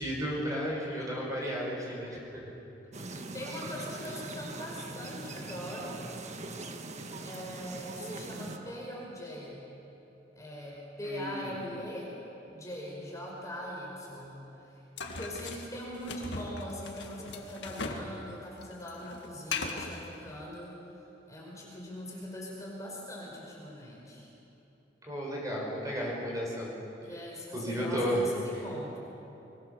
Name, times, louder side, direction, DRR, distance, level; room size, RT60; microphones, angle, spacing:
voice 1, 0.0-2.4 11.0-11.6 25.1-26.8 27.5-28.2, equal, 20° right, -3 dB, 5.2 m, -33 dB
sound 1, 2.9-8.6, right 2 dB, 40° right, 1.5 m, -41 dB
voice 2, 3.3-6.0 7.2-9.6 10.3-12.1 12.4-14.4 15.1-20.8 21.3-24.3 27.0-29.0, equal, 20° left, -3 dB, 5.2 m, -41 dB
sound 2, 15.0-18.1 18.4-20.0, left 4 dB, 75° left, 1.9 m, -38 dB
23.5 x 22.5 x 6.7 m, 3.0 s
head